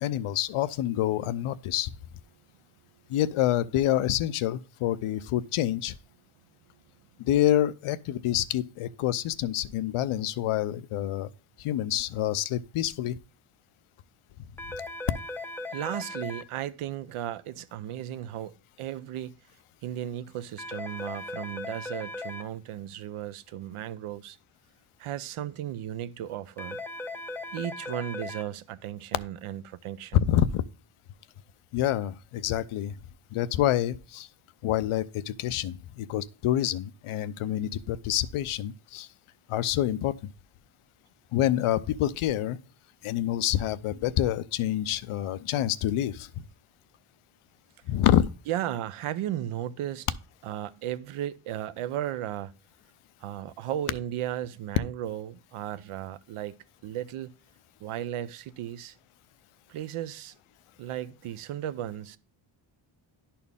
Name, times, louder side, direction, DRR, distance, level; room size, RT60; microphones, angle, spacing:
voice 1, 0.0-1.9 3.1-5.9 7.2-11.3 11.6-13.2 30.1-30.6 31.7-32.9 33.3-34.3 34.6-39.1 39.5-40.3 41.3-42.6 43.0-46.4 47.9-48.3, left 12 dB, 80° left, 0.6 m, -27 dB
sound 1, 14.6-16.4 20.6-22.4 26.6-28.4, left 2 dB, 5° left, 0.5 m, -37 dB
voice 2, 15.7-19.3 19.8-24.4 25.0-26.8 27.5-30.2 48.5-50.1 50.4-52.5 53.2-57.3 57.8-59.0 59.7-60.3 60.8-62.2, right 12 dB, 80° right, 0.6 m, -35 dB
11.0 x 4.3 x 3.5 m
cardioid pair, 105°, 50 cm